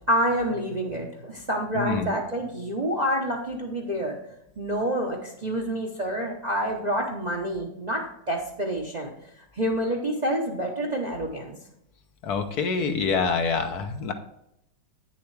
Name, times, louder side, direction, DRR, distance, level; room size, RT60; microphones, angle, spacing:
voice 1, 0.1-4.2 4.6-9.1 9.5-11.5, right 1 dB, 35° right, 0 dB, 0.7 m, -28 dB
voice 2, 1.7-2.1 12.2-14.1, left 5 dB, 65° left, 6 dB, 1.2 m, -26 dB
9.1 x 6.9 x 3.2 m, 0.79 s
omnidirectional pair, 1.9 m